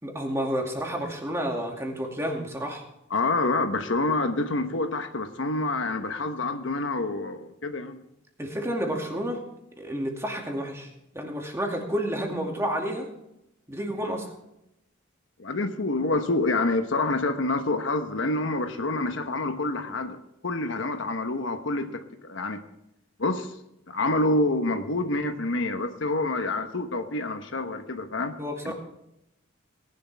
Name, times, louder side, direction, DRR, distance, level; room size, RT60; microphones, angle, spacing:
voice 1, 0.0-2.8 8.4-9.4 9.8-10.9 11.1-13.1 13.7-14.3 28.4-28.7, equal, 15° right, 1 dB, 2.3 m, -30 dB
voice 2, 3.1-8.0 15.4-22.6 23.2-23.6 23.9-28.4 28.6-28.7, left 2 dB, 65° left, 7 dB, 1.1 m, -27 dB
19.0 x 11.5 x 3.5 m, 0.83 s
head